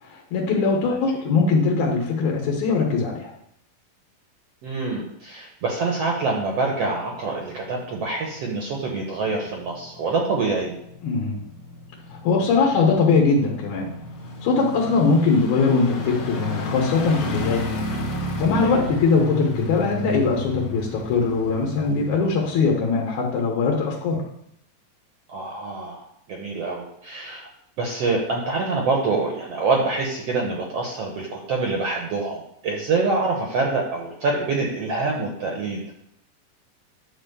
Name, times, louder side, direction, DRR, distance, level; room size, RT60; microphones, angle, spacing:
voice 1, 0.0-3.3 11.0-11.4 12.1-13.9 14.4-17.7 18.4-24.2, left 4 dB, 65° left, -1 dB, 2.5 m, -21 dB
voice 2, 4.6-10.7 18.6-18.9 25.3-27.5 27.8-35.8, right 3 dB, 65° right, -1 dB, 1.7 m, -26 dB
sound 1, 7.0-23.3 23.6-23.7, left 2 dB, 45° left, 1.1 m, -33 dB
10.0 x 4.3 x 6.8 m, 0.73 s
omnidirectional pair, 4.0 m